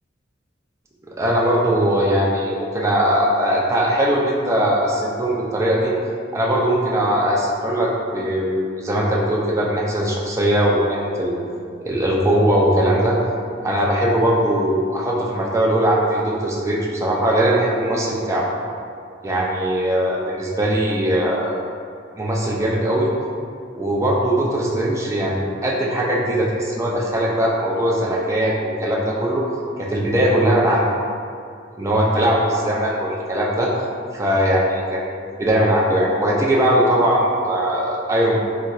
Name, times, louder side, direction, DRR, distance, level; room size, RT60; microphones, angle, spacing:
voice 1, 1.2-5.9 6.3-11.3 11.9-13.2 13.6-18.5 19.2-21.5 22.2-23.1 23.8-29.4 29.8-30.9 31.8-33.7 34.1-38.4, right 1 dB, 15° right, -4 dB, 0.4 m, -20 dB
4.0 x 2.5 x 2.3 m, 2.3 s
head